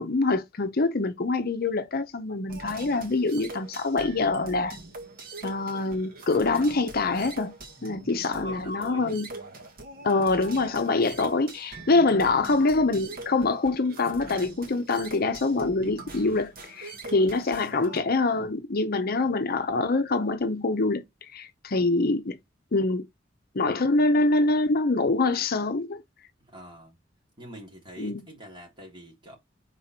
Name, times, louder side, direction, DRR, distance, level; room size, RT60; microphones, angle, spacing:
voice 1, 0.0-4.8 5.4-7.5 7.8-9.3 10.0-22.4 22.7-23.1 23.5-26.0 28.0-28.2, left 3 dB, 55° left, 0.7 m, -25 dB
sound 1, 2.5-18.0, right 2 dB, 50° right, 1.9 m, -42 dB
voice 2, 8.3-9.2 12.0-12.4 17.6-17.7 26.4-27.0 27.4-29.4, equal, 25° right, 3.2 m, -45 dB
5.4 x 4.1 x 4.3 m
head